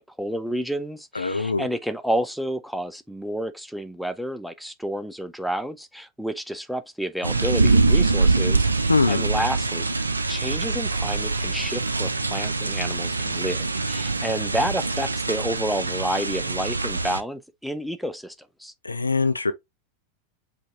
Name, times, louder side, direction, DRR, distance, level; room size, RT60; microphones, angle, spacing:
voice 1, 0.0-18.3 18.6-18.7, right 1 dB, ahead, 0.5 m, -30 dB
voice 2, 1.2-1.7 8.9-9.3 18.8-19.5, left 3 dB, 80° left, 0.5 m, -22 dB
sound 1, 7.2-17.2, right 3 dB, 80° right, 0.5 m, -24 dB
5.3 x 2.7 x 3.4 m
figure-of-eight pair, 90°, 0 cm